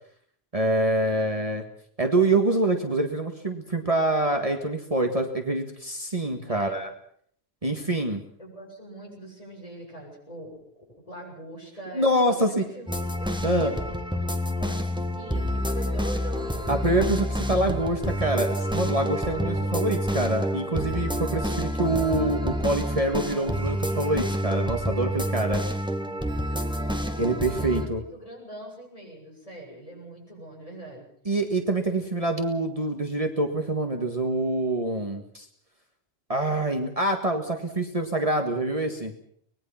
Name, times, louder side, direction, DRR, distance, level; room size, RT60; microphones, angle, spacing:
voice 1, 0.5-1.6 2.0-6.9 7.6-8.2 11.9-12.6 13.4-13.7 16.7-25.6 27.2-28.0 31.3-35.5 36.3-39.1, right 2 dB, 35° right, 4 dB, 1.9 m, -25 dB
voice 2, 6.5-6.8 8.4-16.8 25.6-31.1, right 1 dB, 35° left, -1 dB, 8.2 m, -43 dB
sound 1, 12.9-27.9, equal, 5° right, 1.8 m, -28 dB
24.5 x 20.5 x 5.8 m, 0.62 s
omnidirectional pair, 1.0 m